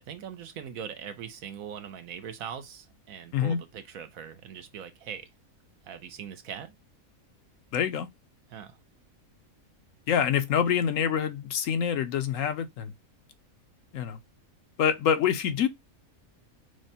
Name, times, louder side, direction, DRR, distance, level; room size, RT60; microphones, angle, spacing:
voice 1, 0.0-5.3 5.8-6.7 8.5-8.8 10.6-10.8, right 8 dB, 75° right, 1.2 m, -41 dB
voice 2, 7.7-8.1 10.1-12.9 13.9-14.2 14.8-15.7, left 8 dB, 70° left, 0.9 m, -26 dB
6.2 x 2.2 x 2.7 m
omnidirectional pair, 1.5 m